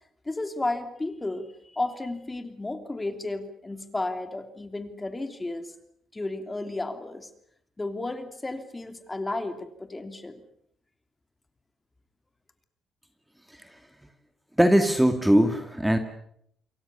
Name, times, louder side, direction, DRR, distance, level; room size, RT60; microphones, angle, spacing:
voice 1, 0.2-5.7 6.1-7.3 7.8-10.4, left 2 dB, 20° left, 8 dB, 3.0 m, -33 dB
voice 2, 14.6-16.0, equal, 5° right, 7 dB, 2.4 m, -20 dB
28.0 x 23.5 x 7.1 m, 0.70 s
cardioid pair, 90°, 0 cm